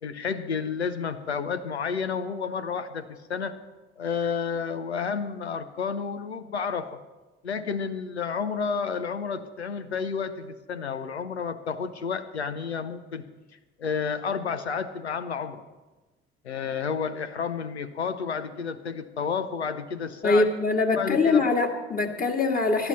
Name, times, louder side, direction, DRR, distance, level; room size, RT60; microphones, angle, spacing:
voice 1, 0.0-3.6 4.0-7.0 7.4-13.2 13.8-15.6 16.4-20.5 20.9-21.4, left 6 dB, 90° left, 12 dB, 0.7 m, -31 dB
voice 2, 20.2-22.9, left 3 dB, 25° left, 1 dB, 2.1 m, -23 dB
19.0 x 11.5 x 4.2 m, 1.1 s
figure-of-eight pair, 50°, 32 cm